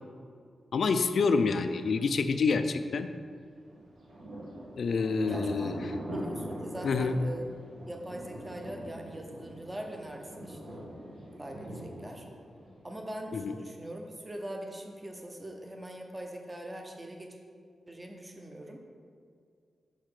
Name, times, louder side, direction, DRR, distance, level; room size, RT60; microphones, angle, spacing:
voice 1, 0.7-3.1 4.8-5.7 6.8-7.2 13.3-13.5, left 4 dB, 55° left, 9 dB, 0.3 m, -27 dB
Thunder, 3.6-13.1, equal, 65° right, 1.6 m, -42 dB
voice 2, 5.2-5.8 6.1-7.5 7.9-10.8 11.4-12.3 12.8-17.4 17.9-18.8, right 1 dB, 15° right, 2 dB, 0.7 m, -42 dB
6.3 x 4.9 x 5.8 m, 2.3 s
wide cardioid pair, 150°, 0 cm